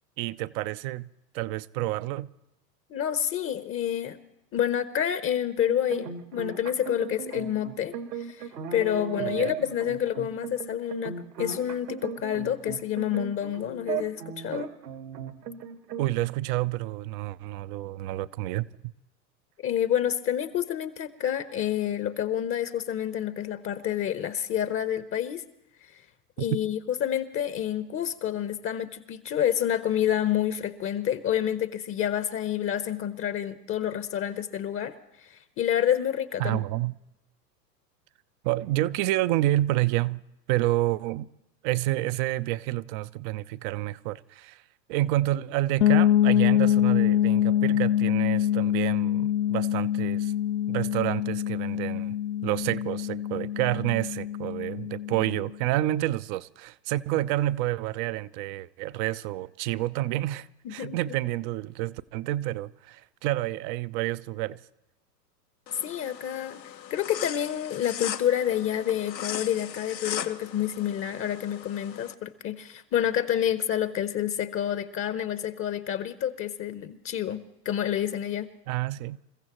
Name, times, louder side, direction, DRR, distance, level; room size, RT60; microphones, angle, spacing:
voice 1, 0.2-1.1 1.3-2.3 9.2-9.5 16.0-18.7 36.4-36.9 38.4-40.2 40.5-41.3 41.6-44.6 44.9-50.3 50.7-52.2 52.4-64.6 78.7-79.2, right 16 dB, 35° right, 0.5 m, -29 dB
voice 2, 2.9-4.2 4.5-14.7 19.6-25.4 26.4-36.7 60.6-61.0 65.8-66.6 66.9-78.5, left 10 dB, 25° left, 0.8 m, -28 dB
sound 1, 5.7-16.1, right 7 dB, 75° right, 1.7 m, -36 dB
sound 2, 45.8-55.5, left 11 dB, 60° left, 0.8 m, -25 dB
sound 3, 65.7-72.1, left 9 dB, 85° left, 1.1 m, -38 dB
28.5 x 15.0 x 3.0 m
hypercardioid pair, 100°, 49 cm